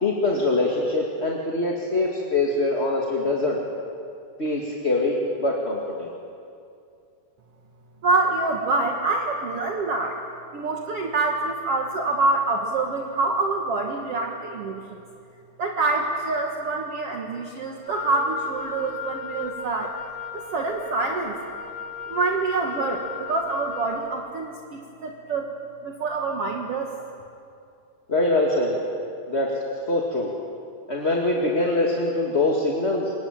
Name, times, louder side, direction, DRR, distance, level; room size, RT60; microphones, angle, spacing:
voice 1, 0.0-3.6 4.4-6.1 28.1-28.8 29.3-29.5 29.9-30.3 30.9-33.1, left 2 dB, 25° left, -2 dB, 2.0 m, -23 dB
voice 2, 8.0-10.2 10.5-15.0 15.6-19.9 20.3-21.3 22.1-25.5 25.8-26.9, right 3 dB, 50° right, 1 dB, 2.3 m, -26 dB
Wind instrument woodwind instrument, 17.8-24.1, left 7 dB, 50° left, 4.8 m, -36 dB
26.0 x 23.0 x 9.0 m, 2.5 s
omnidirectional pair, 3.7 m